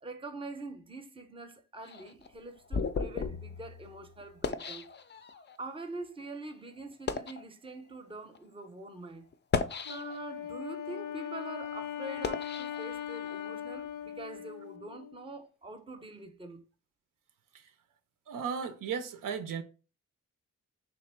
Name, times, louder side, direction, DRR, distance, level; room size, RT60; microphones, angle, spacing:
voice 1, 0.0-4.9 5.3-9.3 9.9-16.6, right 2 dB, 15° right, 0.6 m, -44 dB
sound 1, 1.8-5.6 6.2-6.4 6.9-7.5 8.2-8.4 9.3-10.4 10.9-13.5, left 5 dB, 35° left, 0.4 m, -36 dB
Wind instrument woodwind instrument, 9.8-15.3, left 9 dB, 90° left, 0.5 m, -40 dB
voice 2, 18.3-19.6, right 6 dB, 90° right, 0.6 m, -35 dB
3.4 x 2.8 x 4.4 m
cardioid pair, 85°, 32 cm